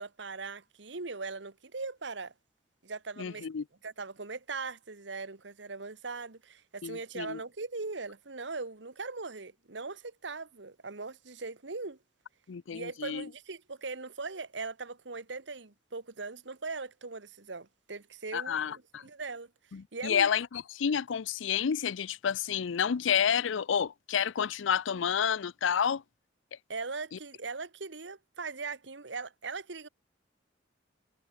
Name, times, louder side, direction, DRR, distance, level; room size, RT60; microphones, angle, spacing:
voice 1, 0.0-2.3 2.8-3.5 3.8-12.0 12.7-19.5 19.9-20.3 26.7-29.9, right 4 dB, 70° right, 1.4 m, -40 dB
voice 2, 3.2-3.6 6.8-7.4 12.5-13.3 18.3-19.0 19.7-26.0 27.1-27.2, left 7 dB, 85° left, 0.5 m, -30 dB
head